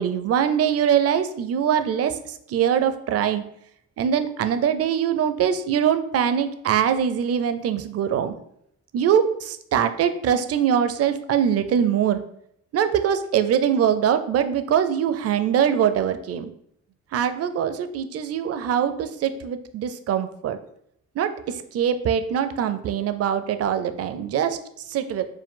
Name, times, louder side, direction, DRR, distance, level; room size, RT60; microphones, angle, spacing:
voice 1, 0.0-3.4 4.0-8.3 8.9-12.2 12.7-16.5 17.1-20.6 21.2-25.3, right 8 dB, 55° right, 10 dB, 0.5 m, -23 dB
4.7 x 2.3 x 3.7 m, 0.71 s
cardioid pair, 90°, 30 cm